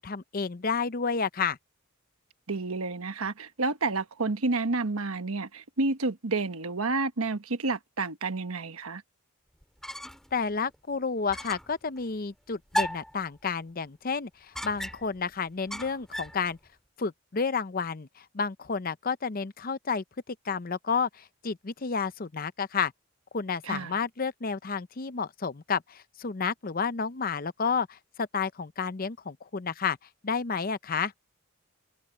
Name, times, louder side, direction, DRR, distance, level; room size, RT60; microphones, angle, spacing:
voice 1, 0.0-1.6 10.3-16.6 17.0-22.9 23.3-30.0 30.2-31.1, left 5 dB, 40° left, 0.6 m, -31 dB
voice 2, 2.5-9.0 23.6-24.0, right 3 dB, 75° right, 1.2 m, -30 dB
sound 1, 9.6-10.4 10.7-10.8 11.3-11.8 12.7-13.2 14.5-15.2 15.7-16.4, equal, ahead, 2.0 m, -34 dB
head